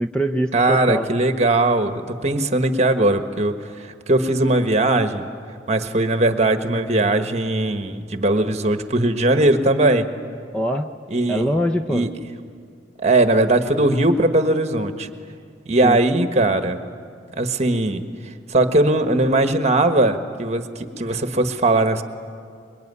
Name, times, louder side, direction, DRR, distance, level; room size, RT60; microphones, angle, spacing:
voice 1, 0.0-1.1 10.5-10.9 11.3-12.1 15.8-16.0, equal, 5° left, 5 dB, 0.6 m, -23 dB
voice 2, 0.5-3.5 3.8-5.3 5.7-10.0 11.1-11.5 11.9-12.1 13.0-15.1 15.7-16.8 17.4-18.0 18.5-22.0, right 2 dB, 35° right, 8 dB, 1.4 m, -19 dB
24.5 x 22.5 x 9.7 m, 2.2 s
head